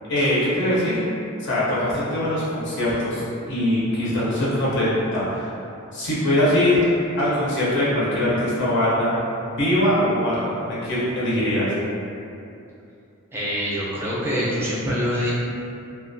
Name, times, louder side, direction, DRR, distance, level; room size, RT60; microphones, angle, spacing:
voice 1, 0.1-1.0 1.4-5.5 5.9-6.8 7.2-9.1 9.4-11.7, left 1 dB, 60° left, -9 dB, 0.6 m, -22 dB
voice 2, 13.3-15.3, equal, 10° right, -8 dB, 0.4 m, -25 dB
2.2 x 2.2 x 2.5 m, 2.6 s
head